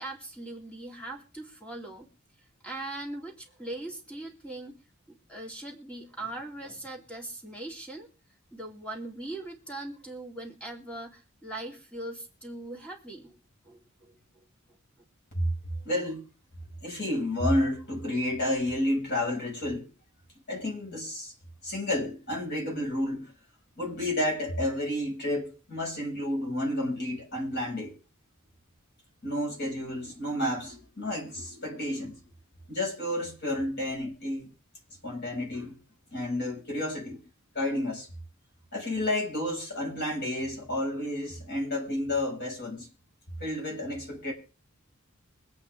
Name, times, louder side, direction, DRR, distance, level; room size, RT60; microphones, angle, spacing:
voice 1, 0.0-2.1 2.6-4.8 5.1-8.1 8.5-13.4 13.6-14.1, right 2 dB, 5° left, 2.4 m, -40 dB
voice 2, 15.3-16.3 16.8-19.9 20.5-21.3 21.6-23.3 23.8-27.9 29.2-32.2 32.7-34.5 35.0-35.8 36.1-37.2 37.5-38.1 38.7-42.9 43.4-44.3, left 1 dB, 50° left, 6.1 m, -31 dB
23.5 x 8.8 x 3.6 m
head